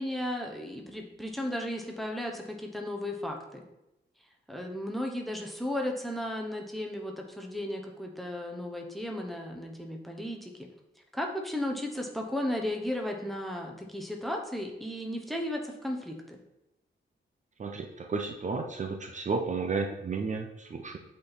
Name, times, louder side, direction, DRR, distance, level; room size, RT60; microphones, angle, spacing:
voice 1, 0.0-3.6 4.5-10.7 11.1-16.4, left 1 dB, ahead, 2 dB, 0.9 m, -35 dB
voice 2, 17.6-21.0, right 4 dB, 40° right, 3 dB, 0.6 m, -32 dB
8.4 x 4.4 x 4.1 m, 0.89 s
wide cardioid pair, 155°, 20 cm